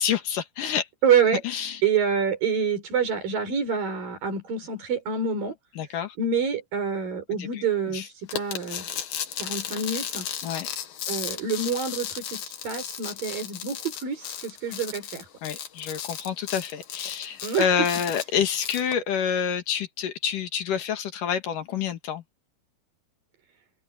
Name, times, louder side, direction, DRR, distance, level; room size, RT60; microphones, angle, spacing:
voice 1, 0.0-0.9 1.4-1.8 5.8-6.2 7.4-7.5 7.9-8.1 10.4-10.7 15.4-22.2, left 8 dB, 70° left, 3.3 m, -27 dB
voice 2, 1.0-1.4 1.8-5.6 6.2-8.9 9.4-10.3 11.1-15.2 17.4-17.9, right 6 dB, 80° right, 6.9 m, -27 dB
sound 1, 8.3-18.9, left 9 dB, 85° left, 3.6 m, -35 dB
open air
omnidirectional pair, 4.0 m